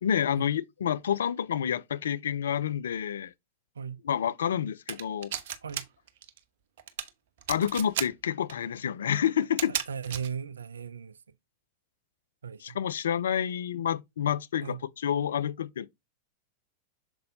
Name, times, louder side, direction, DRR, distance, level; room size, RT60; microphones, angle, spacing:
voice 1, 0.0-3.3 4.0-5.3 7.5-9.7 12.6-15.9, left 9 dB, 65° left, 0.4 m, -29 dB
Winchester rifle loading and cocking, 4.9-5.8 6.1-6.4 6.8-7.1 7.4-8.1 8.5-8.6 9.4-10.3, right 10 dB, 55° right, 0.8 m, -33 dB
voice 2, 9.7-11.1 12.4-12.8 14.6-14.8, right 7 dB, 70° right, 0.4 m, -37 dB
6.9 x 5.2 x 2.7 m
figure-of-eight pair, 90°, 0 cm